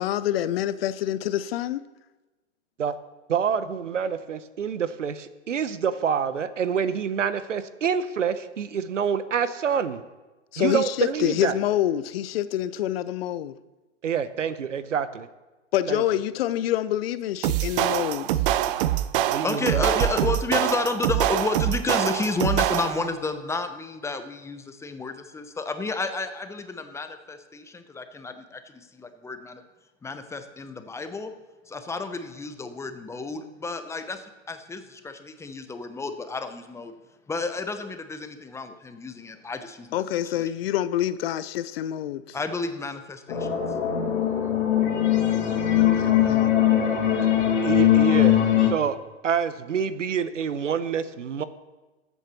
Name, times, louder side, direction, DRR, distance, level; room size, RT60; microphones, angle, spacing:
voice 1, 0.0-1.8 10.5-13.5 15.7-18.4 39.9-42.4 45.8-46.5, left 12 dB, 55° left, 0.6 m, -27 dB
voice 2, 3.3-10.0 10.6-11.5 14.0-15.3 15.9-16.0 19.3-19.8 47.6-49.0 49.2-51.4, right 7 dB, 85° right, 0.8 m, -27 dB
sound 1, 17.4-23.1, right 13 dB, 50° right, 0.6 m, -24 dB
voice 3, 19.4-29.6 30.0-31.3 31.7-36.9 37.3-40.0 40.3-40.5 42.3-43.6, left 3 dB, 10° left, 0.7 m, -31 dB
sound 2, 43.3-48.7, left 11 dB, 75° left, 2.6 m, -21 dB
21.0 x 8.1 x 3.0 m
hypercardioid pair, 110°, 36 cm